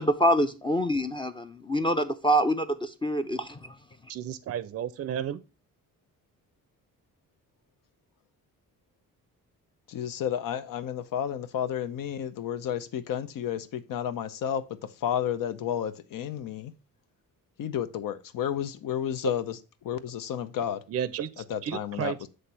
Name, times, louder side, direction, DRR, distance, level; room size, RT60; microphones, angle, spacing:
voice 1, 0.0-3.7, equal, 15° left, 0.5 m, -26 dB
voice 2, 4.1-5.4 20.9-22.2, right 9 dB, 45° right, 0.5 m, -33 dB
voice 3, 9.9-16.7 17.6-19.5 19.8-20.8 21.5-22.3, left 9 dB, 75° left, 0.7 m, -31 dB
7.9 x 3.3 x 5.5 m
cardioid pair, 125°, 33 cm